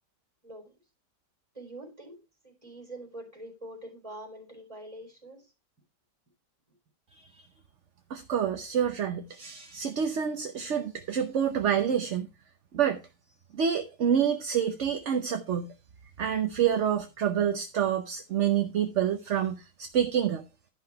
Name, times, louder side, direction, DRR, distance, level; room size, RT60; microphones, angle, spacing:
voice 1, 1.5-2.2 2.4-5.4, right 1 dB, 20° right, 4.1 m, -44 dB
voice 2, 8.1-12.3 12.7-13.0 13.5-15.7 16.2-20.4, right 8 dB, 55° right, 1.0 m, -27 dB
11.5 x 6.0 x 4.7 m
omnidirectional pair, 1.8 m